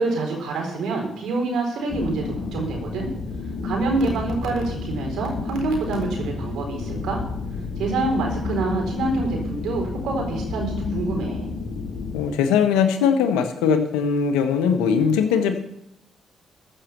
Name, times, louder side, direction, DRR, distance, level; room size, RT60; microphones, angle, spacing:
voice 1, 0.0-3.1 3.6-7.2 7.8-11.5, right 3 dB, 70° right, 1 dB, 4.3 m, -26 dB
sound 1, 1.9-12.2, left 4 dB, 60° left, 1.8 m, -30 dB
voice 2, 12.1-15.6, left 6 dB, 80° left, 7 dB, 1.3 m, -20 dB
14.5 x 6.6 x 7.0 m, 0.81 s
hypercardioid pair, 45°, 0 cm